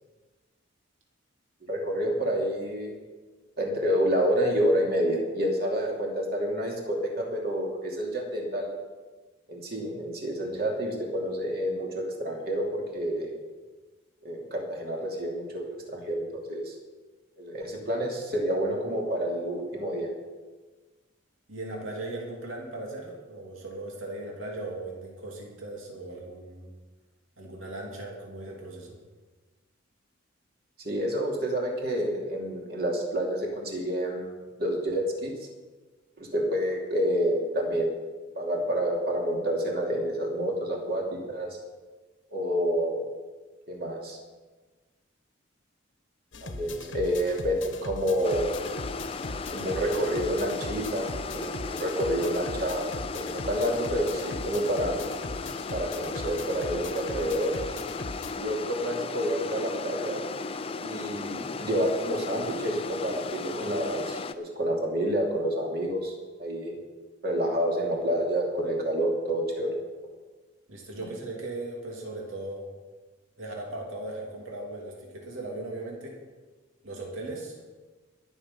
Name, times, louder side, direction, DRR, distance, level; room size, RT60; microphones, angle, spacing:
voice 1, 1.6-3.0 3.6-8.7 9.5-13.3 14.2-16.7 17.4-20.1 30.8-34.3 34.6-35.3 36.2-38.0 38.4-41.5 42.3-43.1 43.7-44.2 46.4-48.6 49.5-55.1 55.7-57.6 58.4-60.2 60.8-66.1 66.4-66.8 67.2-69.7, equal, 50° right, -1 dB, 2.8 m, -28 dB
voice 2, 21.5-26.7 27.4-29.0 70.7-72.7 73.4-76.2 76.8-77.6, right 2 dB, 90° right, -1 dB, 3.0 m, -38 dB
sound 1, 46.3-58.4, left 2 dB, 70° left, 1.2 m, -40 dB
sound 2, 48.2-64.3, left 4 dB, 30° left, 0.5 m, -36 dB
21.5 x 7.2 x 5.6 m, 1.3 s
head